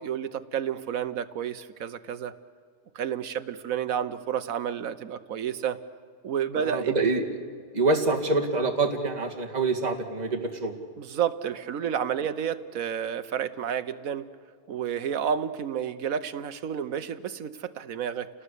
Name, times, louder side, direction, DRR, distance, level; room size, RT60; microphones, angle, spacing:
voice 1, 0.0-2.3 2.9-5.8 6.2-6.9 11.0-14.3 14.7-18.3, right 8 dB, 60° right, 11 dB, 1.2 m, -30 dB
voice 2, 6.6-7.2 7.7-10.7, right 3 dB, 25° right, 1 dB, 2.1 m, -26 dB
29.5 x 18.5 x 8.3 m, 2.1 s
omnidirectional pair, 1.8 m